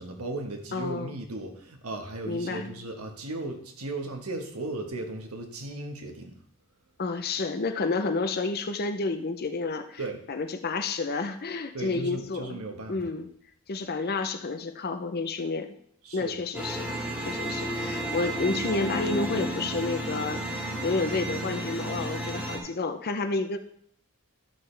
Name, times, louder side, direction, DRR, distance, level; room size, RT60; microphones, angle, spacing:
voice 1, 0.0-6.4 10.0-10.2 11.7-13.1 16.0-16.4, right 2 dB, 75° right, 4 dB, 1.4 m, -36 dB
voice 2, 0.7-1.1 2.2-2.7 7.0-10.0 10.3-12.6 12.9-13.3 13.7-15.7 16.1-16.9 17.2-23.6, left 3 dB, 45° left, 7 dB, 0.6 m, -30 dB
sound 1, 16.5-22.6, right 1 dB, 5° right, 2.0 m, -32 dB
12.5 x 6.5 x 3.3 m, 0.65 s
head